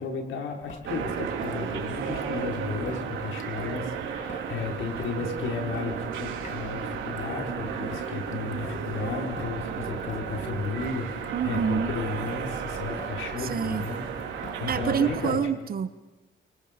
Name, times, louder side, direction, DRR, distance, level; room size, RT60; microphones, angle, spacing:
voice 1, 0.0-15.4, left 4 dB, 80° left, 1 dB, 4.7 m, -34 dB
Traffic noise roadway noise / Drip / Trickle dribble, 0.6-14.6, left 5 dB, 40° left, 1.9 m, -46 dB
sound 1, 0.8-15.3, right 7 dB, 80° right, 3.7 m, -34 dB
voice 2, 11.3-11.9 13.5-13.8 14.7-15.9, right 7 dB, 50° right, 12 dB, 1.3 m, -27 dB
30.0 x 25.5 x 5.3 m, 1.1 s
cardioid pair, 90°, 20 cm